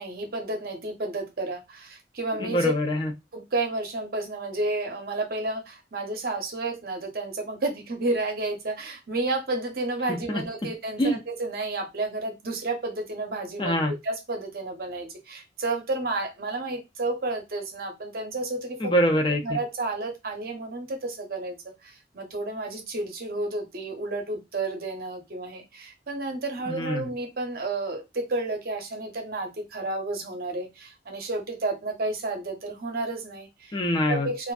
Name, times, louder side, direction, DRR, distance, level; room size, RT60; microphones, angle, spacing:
voice 1, 0.0-2.7 3.3-19.0 19.4-21.6 21.8-33.8 34.1-34.5, right 2 dB, 55° right, 0.7 m, -31 dB
voice 2, 2.4-3.1 10.1-10.4 11.0-11.2 13.6-13.9 18.8-19.4 26.7-27.1 33.7-34.3, equal, 25° left, 0.4 m, -24 dB
2.5 x 2.4 x 2.3 m
head